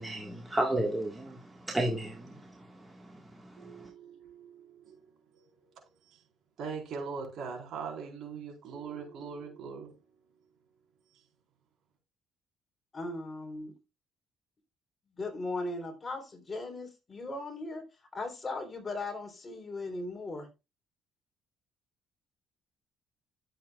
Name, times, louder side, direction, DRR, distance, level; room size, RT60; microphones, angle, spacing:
voice 1, 0.0-3.9, right 1 dB, 10° right, 1.7 m, -34 dB
voice 2, 3.6-5.0 5.3-5.9 6.6-10.0, right 5 dB, 65° right, 4.3 m, -41 dB
voice 3, 12.9-13.7 15.2-17.8 18.1-20.5, left 2 dB, 30° left, 3.5 m, -38 dB
12.5 x 7.6 x 2.4 m
cardioid pair, 95°, 0 cm